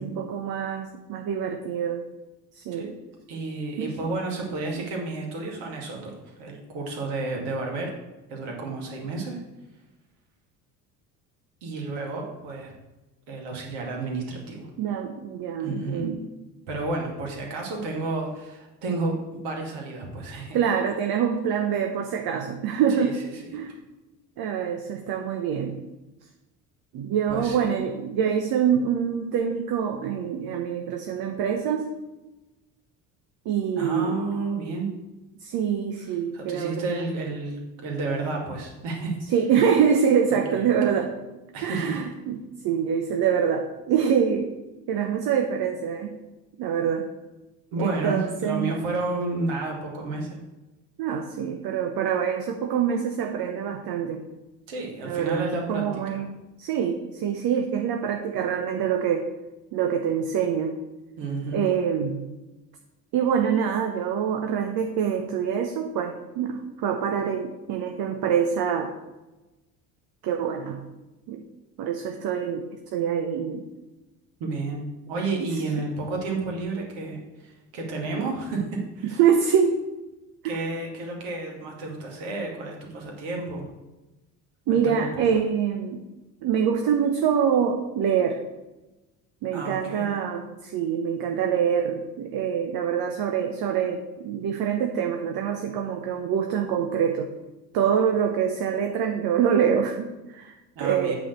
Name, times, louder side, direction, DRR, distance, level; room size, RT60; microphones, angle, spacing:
voice 1, 0.0-2.0 2.5-2.9 3.8-3.9 4.7-4.8 14.8-16.2 20.5-23.2 23.5-23.8 24.4-25.8 26.9-31.9 33.4-34.2 35.4-37.0 39.3-41.1 41.6-44.5 44.9-46.2 46.6-47.1 47.8-48.7 51.0-54.3 55.0-56.3 56.6-59.3 59.7-60.8 61.5-62.2 63.1-68.9 70.2-70.8 71.3-71.4 71.8-73.6 75.4-75.5 79.2-79.8 80.4-80.7 84.7-86.0 86.4-88.4 89.4-97.3 97.7-101.1, right 7 dB, 45° right, 4 dB, 1.0 m, -25 dB
voice 2, 3.3-7.9 8.3-9.4 11.6-12.7 13.3-14.7 15.6-16.2 16.7-20.6 22.9-23.1 23.4-23.6 27.3-27.7 33.8-34.9 36.1-39.2 40.5-40.9 41.5-42.0 47.7-50.4 54.7-56.2 61.2-61.7 74.4-74.8 75.1-79.2 80.4-83.7 84.7-85.3 89.5-90.1 100.8-101.1, right 3 dB, 60° right, 0 dB, 2.4 m, -31 dB
8.6 x 4.2 x 6.7 m, 1.1 s
figure-of-eight pair, 60°, 50 cm